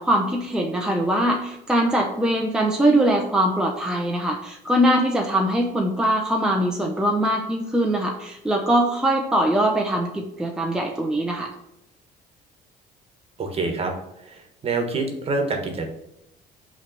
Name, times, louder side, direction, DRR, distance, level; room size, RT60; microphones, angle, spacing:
voice 1, 0.0-11.5, right 1 dB, 5° right, 1 dB, 0.7 m, -22 dB
voice 2, 13.4-13.9 14.2-15.9, right 3 dB, 35° right, 4 dB, 1.3 m, -26 dB
5.5 x 3.3 x 5.5 m, 0.84 s
cardioid pair, 110°, 17 cm